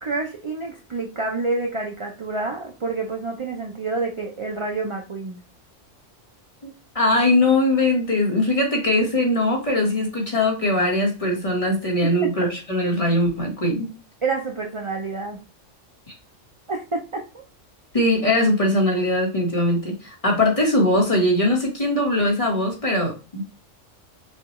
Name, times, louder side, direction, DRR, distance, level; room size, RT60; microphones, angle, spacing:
voice 1, 0.0-5.4 12.2-12.3 14.2-15.4 16.7-17.4, right 3 dB, 45° right, 2 dB, 0.4 m, -28 dB
voice 2, 6.9-13.9 17.9-23.4, left 1 dB, 30° left, 0 dB, 1.2 m, -21 dB
6.3 x 2.3 x 3.0 m, 0.31 s
omnidirectional pair, 1.3 m